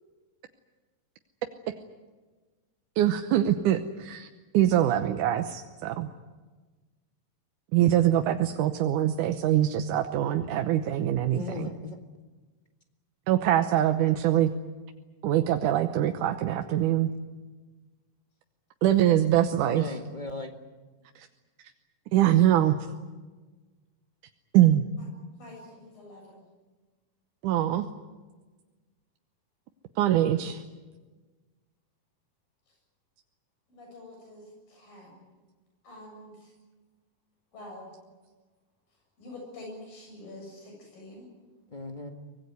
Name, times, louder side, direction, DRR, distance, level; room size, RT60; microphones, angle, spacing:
voice 1, 3.0-4.3 4.5-6.1 7.7-11.7 13.3-14.5 15.2-17.1 18.8-20.0 21.2-21.3 22.1-22.8 24.5-24.9 27.4-27.9 30.0-30.6, right 12 dB, 75° right, 7 dB, 2.3 m, -23 dB
voice 2, 11.3-12.0 19.6-20.6 41.7-42.1, left 3 dB, 40° left, 4 dB, 0.6 m, -37 dB
voice 3, 25.4-26.5 33.7-35.2 35.8-36.5 37.5-37.9 39.2-41.3, left 1 dB, 80° left, 0 dB, 9.0 m, -46 dB
24.5 x 19.5 x 9.5 m, 1.3 s
omnidirectional pair, 4.0 m